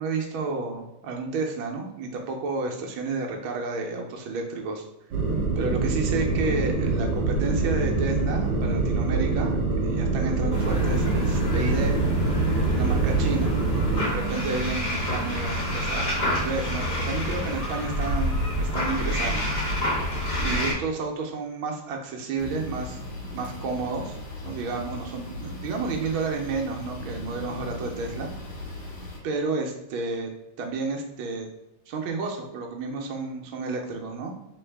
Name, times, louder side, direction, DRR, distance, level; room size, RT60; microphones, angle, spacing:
voice 1, 0.0-4.8 5.6-12.0 12.6-13.5 14.1-19.5 20.4-23.0 23.3-24.2 24.4-28.3 29.2-30.3 30.6-31.5 31.9-34.3, right 4 dB, 75° right, 2 dB, 1.4 m, -31 dB
sound 1, 5.1-14.0, right 3 dB, 60° right, 1.4 m, -25 dB
sound 2, 10.5-20.7, equal, 50° left, 2.3 m, -27 dB
sound 3, 22.4-29.2, left 1 dB, 70° left, 2.5 m, -38 dB
3.8 x 3.5 x 3.3 m, 0.92 s
omnidirectional pair, 2.3 m